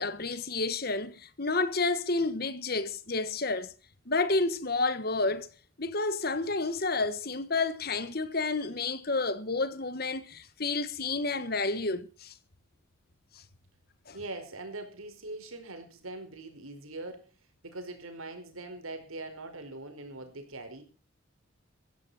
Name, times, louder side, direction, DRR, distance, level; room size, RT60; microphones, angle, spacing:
voice 1, 0.0-3.7 4.1-5.5 5.8-12.3 13.3-13.4 14.1-14.2, left 3 dB, 45° left, 1.4 m, -30 dB
voice 2, 14.1-17.2 17.6-20.8, right 2 dB, 90° right, 4.9 m, -42 dB
15.5 x 15.0 x 4.2 m
head